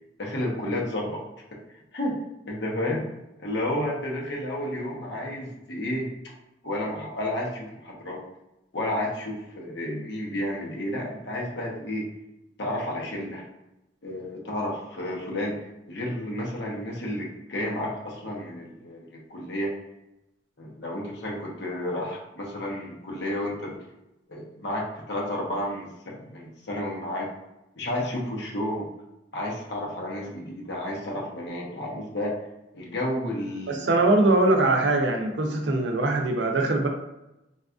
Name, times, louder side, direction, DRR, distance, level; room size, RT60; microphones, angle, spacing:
voice 1, 0.2-1.2 1.9-2.2 2.4-3.1 3.4-6.1 6.6-8.2 8.7-12.0 12.6-13.4 14.0-15.6 15.9-19.7 20.6-23.8 24.3-27.3 27.8-28.9 29.3-32.3 32.7-33.9 35.4-35.5, left 1 dB, 75° left, -2 dB, 0.9 m, -31 dB
voice 2, 33.7-36.9, right 2 dB, 85° right, 3 dB, 0.5 m, -22 dB
4.1 x 2.3 x 2.4 m, 0.91 s
head